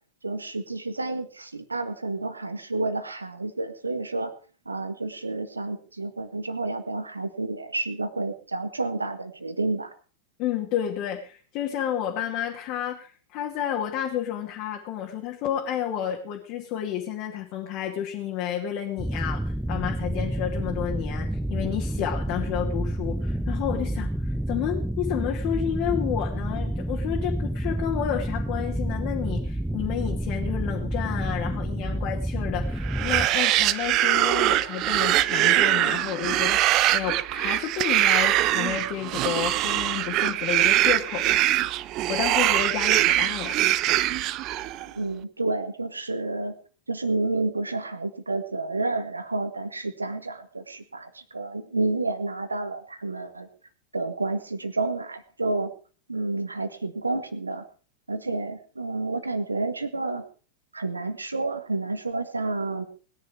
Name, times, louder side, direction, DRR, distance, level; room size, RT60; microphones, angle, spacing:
voice 1, 0.2-4.3 4.7-9.9 45.0-46.5 46.9-53.5 53.9-55.7 56.1-57.6 58.1-60.2 60.7-62.8, right 2 dB, 80° right, 10 dB, 1.8 m, -30 dB
voice 2, 10.4-24.1 24.5-41.5 42.1-43.6, left 10 dB, 40° left, 0 dB, 2.5 m, -31 dB
sound 1, 19.0-33.3, right 1 dB, ahead, 0.6 m, -29 dB
sound 2, 32.8-44.9, right 14 dB, 40° right, 0.8 m, -23 dB
20.0 x 10.5 x 4.8 m, 0.39 s
figure-of-eight pair, 90°, 0 cm